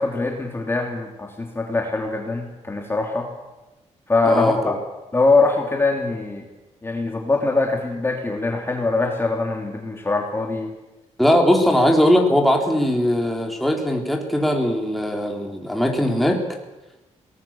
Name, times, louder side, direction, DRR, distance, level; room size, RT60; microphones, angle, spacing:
voice 1, 0.0-3.3 4.1-4.7 5.1-6.5 6.8-10.7, left 3 dB, 20° left, 1 dB, 3.1 m, -22 dB
voice 2, 4.2-4.8 11.2-16.4, equal, ahead, 1 dB, 3.6 m, -19 dB
21.5 x 19.5 x 7.3 m, 1.1 s
cardioid pair, 120°, 12 cm